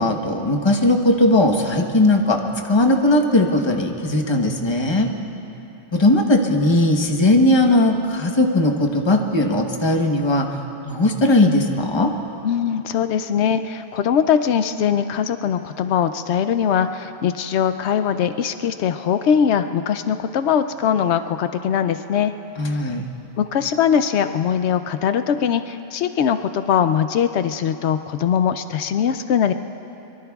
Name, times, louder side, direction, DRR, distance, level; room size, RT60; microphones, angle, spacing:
voice 1, 0.0-2.4 2.7-5.1 5.9-10.5 10.9-12.1 22.6-23.0, left 1 dB, 25° left, 2 dB, 1.0 m, -18 dB
voice 2, 12.4-22.3 23.4-29.5, left 8 dB, 80° left, 9 dB, 0.9 m, -21 dB
24.0 x 23.5 x 2.3 m, 2.9 s
omnidirectional pair, 1.1 m